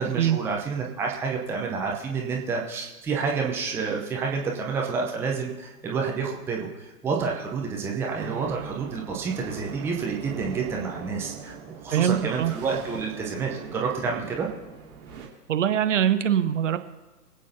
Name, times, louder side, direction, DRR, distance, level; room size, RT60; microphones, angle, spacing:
voice 1, 0.0-14.5, right 5 dB, 5° right, -1 dB, 0.8 m, -29 dB
sound 1, 8.1-15.3, right 6 dB, 20° right, 2.5 m, -40 dB
voice 2, 11.9-12.5 15.5-16.8, right 9 dB, 50° right, 10 dB, 0.9 m, -23 dB
24.5 x 8.6 x 2.8 m, 1.2 s
figure-of-eight pair, 120°, 47 cm